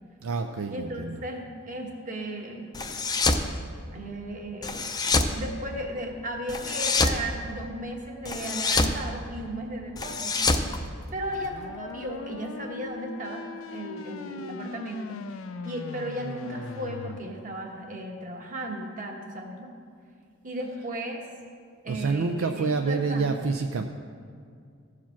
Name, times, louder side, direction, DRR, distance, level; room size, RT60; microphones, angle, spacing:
voice 1, 0.2-1.2 20.8-20.9 21.9-23.8, right 4 dB, 70° right, 5 dB, 0.4 m, -28 dB
voice 2, 0.7-2.7 3.9-10.3 11.1-15.1 15.6-19.7 20.4-21.2 21.8-23.4, right 1 dB, 40° right, 1 dB, 1.3 m, -35 dB
sound 1, 2.7-3.5 4.6-5.4 6.5-7.2 8.3-9.0 10.0-11.5, left 3 dB, 20° left, 0.5 m, -26 dB
sound 2, 11.2-17.2, left 4 dB, 70° left, 0.5 m, -40 dB
14.5 x 4.9 x 5.8 m, 2.3 s
head